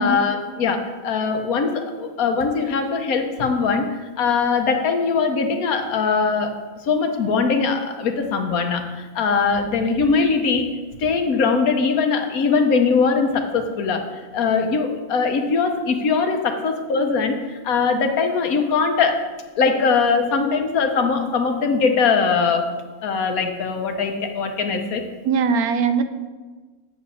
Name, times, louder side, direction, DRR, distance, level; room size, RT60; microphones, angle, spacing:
voice 1, 0.0-6.5 6.8-10.7 11.0-14.0 14.3-19.2 19.6-22.7 23.0-25.0, left 5 dB, 70° left, 5 dB, 1.3 m, -21 dB
voice 2, 25.2-26.0, right 5 dB, 80° right, 9 dB, 1.1 m, -20 dB
7.8 x 4.9 x 6.7 m, 1.3 s
omnidirectional pair, 1.6 m